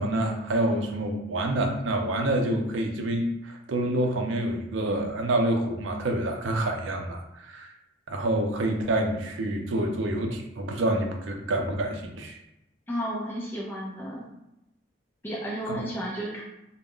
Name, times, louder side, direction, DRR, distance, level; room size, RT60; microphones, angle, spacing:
voice 1, 0.0-7.7 8.1-12.4 15.7-15.8, right 1 dB, 85° right, 3 dB, 0.5 m, -27 dB
voice 2, 12.9-14.3 15.2-16.4, equal, 10° left, -5 dB, 0.4 m, -32 dB
2.3 x 2.0 x 3.6 m, 0.89 s
head